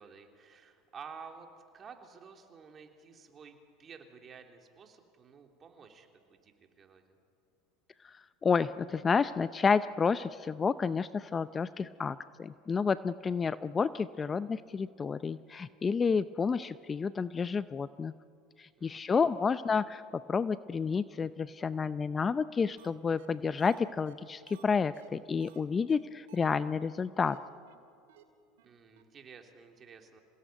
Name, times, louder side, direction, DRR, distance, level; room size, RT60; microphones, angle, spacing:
voice 1, 0.0-1.5 1.7-7.2 18.8-19.2 28.6-30.2, right 6 dB, 35° right, 4 dB, 3.4 m, -52 dB
voice 2, 8.4-18.1 18.6-27.4, left 5 dB, 25° left, 15 dB, 0.6 m, -30 dB
sound 1, 22.8-22.9 23.2-23.3 23.6-25.6 25.9-26.0 26.3-26.5 26.8-26.9 27.2-27.4 27.7-27.8 28.1-28.2 28.6-28.7 29.0-29.1, right 11 dB, 80° right, 2.3 m, -57 dB
27.0 x 17.5 x 9.3 m, 2.4 s
hypercardioid pair, 95°, 0 cm